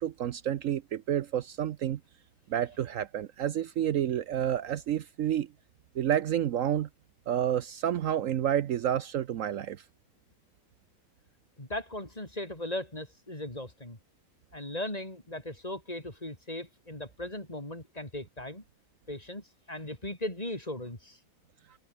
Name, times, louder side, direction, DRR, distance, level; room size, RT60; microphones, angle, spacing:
voice 1, 0.0-2.0 2.5-5.5 5.9-6.9 7.3-9.8, right 10 dB, 65° right, 1.1 m, -29 dB
voice 2, 11.6-14.0 14.5-18.6 19.1-21.2, left 1 dB, 25° left, 4.4 m, -38 dB
omnidirectional pair, 1.5 m